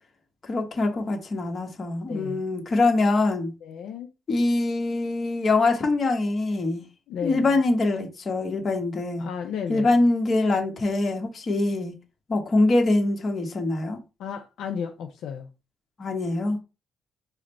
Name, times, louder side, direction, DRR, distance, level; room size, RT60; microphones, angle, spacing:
voice 1, 0.4-3.5 4.3-6.8 7.2-9.3 9.7-11.9 12.3-14.0 16.0-16.6, left 2 dB, 40° left, 1.1 m, -24 dB
voice 2, 2.1-2.4 3.6-4.1 7.1-7.5 9.2-10.0 14.2-15.5, left 7 dB, 80° left, 0.5 m, -33 dB
4.9 x 2.1 x 4.2 m
cardioid pair, 90°, 0 cm